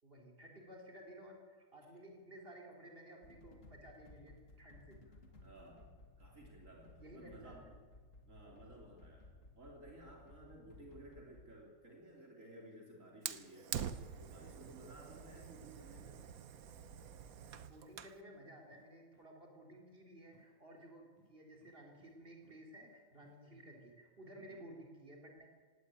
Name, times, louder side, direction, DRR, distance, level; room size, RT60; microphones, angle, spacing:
voice 1, 0.0-5.0 7.0-7.6 17.6-25.5, right 1 dB, 40° right, 0 dB, 4.1 m, -55 dB
sound 1, 3.2-11.5, left 2 dB, 65° left, 2.5 m, -59 dB
voice 2, 5.4-5.9 6.2-7.7 8.3-9.3 9.5-13.8 14.2-16.2 24.4-24.7, right 1 dB, 65° right, -1 dB, 3.7 m, -56 dB
sound 2, 12.2-12.3 12.6-13.5 13.7-13.9 14.2-14.3 14.6-14.7 15.0-15.1 15.4-15.5 15.8-15.9 16.2-16.3 16.6-17.2 17.5-17.6 17.9-18.0 18.3-18.4 18.7-18.8 19.1-19.2 20.3-20.4 20.8-21.3 21.6-22.1 22.4-23.0 23.2-23.4, right 2 dB, 20° right, 7.3 m, -72 dB
Fire, 13.2-18.2, right 8 dB, 80° right, 1.4 m, -46 dB
17.5 x 17.5 x 9.3 m, 1.5 s
omnidirectional pair, 1.5 m